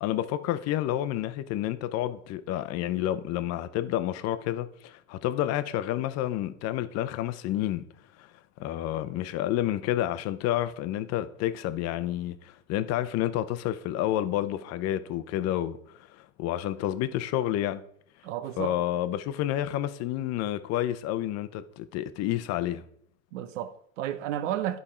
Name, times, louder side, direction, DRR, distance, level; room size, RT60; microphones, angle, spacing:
voice 1, 0.0-7.8 8.2-8.3 8.6-17.8 18.6-22.8, left 13 dB, 45° left, 0.7 m, -29 dB
voice 2, 18.2-18.7 23.3-24.8, right 11 dB, 75° right, 0.8 m, -32 dB
9.8 x 5.3 x 4.3 m
supercardioid pair, 115°, 37 cm